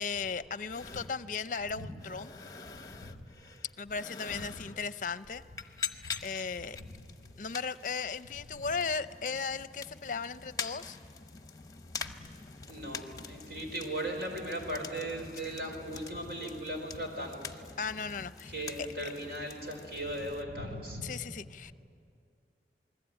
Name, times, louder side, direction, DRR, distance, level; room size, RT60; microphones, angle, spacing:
voice 1, 0.0-2.3 3.8-5.4 6.2-6.8 7.4-11.0 17.8-18.5 18.8-19.1 21.0-21.7, left 5 dB, 45° left, 13 dB, 0.6 m, -36 dB
sound 1, 0.7-20.4, left 5 dB, 20° left, 0.9 m, -45 dB
voice 2, 12.7-17.6 18.5-21.1, right 1 dB, 65° right, 2 dB, 4.9 m, -38 dB
28.0 x 21.0 x 9.0 m, 2.4 s
head